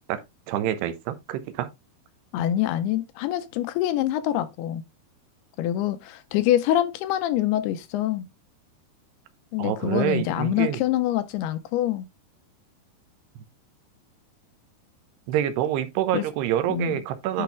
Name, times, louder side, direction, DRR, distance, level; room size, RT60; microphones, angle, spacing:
voice 1, 0.5-1.7 9.6-10.8 15.3-17.4, right 11 dB, 85° right, 2.9 m, -26 dB
voice 2, 2.3-4.8 5.6-8.3 9.5-12.1 16.1-16.3 16.7-17.0 17.3-17.4, left 12 dB, 85° left, 2.7 m, -25 dB
10.0 x 4.4 x 3.4 m
omnidirectional pair, 4.7 m